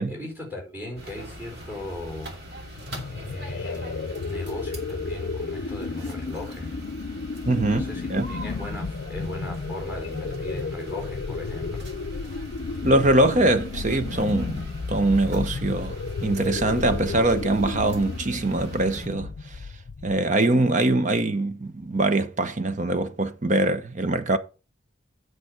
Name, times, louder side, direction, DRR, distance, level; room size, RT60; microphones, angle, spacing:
voice 1, 0.0-2.4 3.1-6.8 7.6-11.9, left 1 dB, 10° right, 4.5 m, -37 dB
sound 1, 0.9-19.1, equal, 55° right, 2.6 m, -42 dB
sound 2, 2.8-20.3, left 4 dB, 65° left, 0.5 m, -33 dB
voice 2, 7.5-8.3 12.8-14.6 14.9-19.6 20.0-24.4, right 2 dB, 35° right, 0.8 m, -23 dB
8.9 x 6.3 x 4.9 m
head